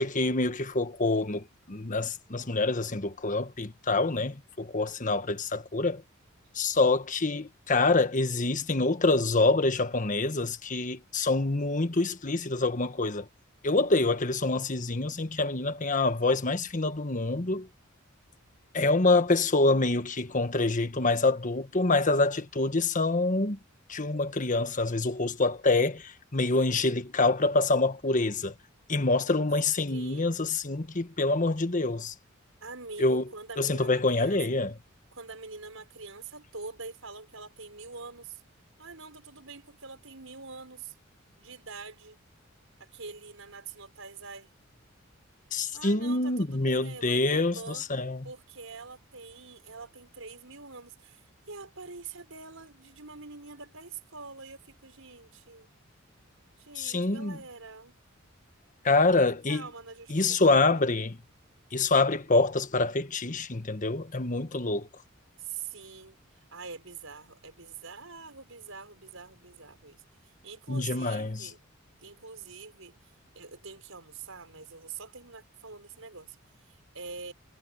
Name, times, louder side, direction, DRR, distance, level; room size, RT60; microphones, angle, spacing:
voice 1, 0.0-6.0 6.5-13.3 13.6-17.7 18.7-23.6 23.9-28.5 28.9-32.1 33.0-33.2 33.6-34.8 45.5-48.3 56.8-57.4 58.8-59.7 60.1-61.2 61.7-64.9 70.7-71.5, left 3 dB, 40° left, 1.4 m, -26 dB
voice 2, 29.9-30.4 32.6-34.6 35.1-38.4 38.8-40.9 41.4-42.2 42.8-44.5 45.7-47.9 48.2-51.2 51.5-55.7 56.6-58.0 59.0-59.2 59.5-60.8 65.4-66.2 66.5-70.0 70.4-71.6 72.0-72.9 73.3-76.4 76.7-77.3, right 4 dB, 75° right, 6.6 m, -44 dB
head